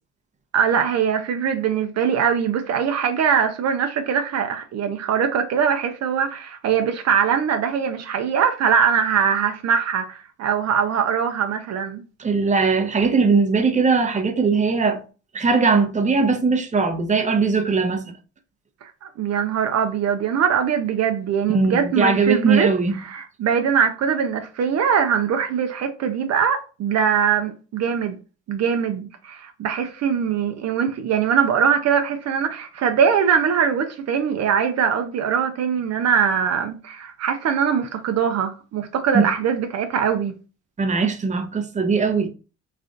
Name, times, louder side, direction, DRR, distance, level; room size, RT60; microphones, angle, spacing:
voice 1, 0.5-12.0 18.8-22.7 23.0-28.2 28.5-40.3, right 7 dB, 60° right, 0.5 m, -22 dB
voice 2, 12.2-15.0 15.3-18.1 21.5-23.0 39.1-39.3 40.8-42.3, right 4 dB, 25° right, 0.7 m, -20 dB
3.2 x 2.4 x 3.8 m
cardioid pair, 90°, 30 cm